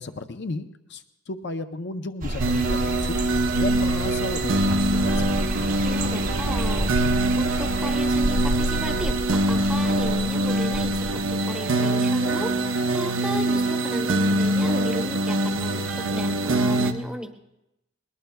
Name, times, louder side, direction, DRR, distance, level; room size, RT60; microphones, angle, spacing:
voice 1, 0.0-3.2 3.5-5.5, left 3 dB, 60° left, 7 dB, 0.7 m, -34 dB
sound 1, 2.2-11.4, right 1 dB, 40° right, 0.8 m, -30 dB
sound 2, 2.4-16.9, right 1 dB, 70° right, 0.9 m, -24 dB
voice 2, 5.8-6.9 7.3-17.3, equal, 5° right, 3 dB, 1.0 m, -34 dB
21.0 x 19.5 x 2.3 m, 0.87 s
head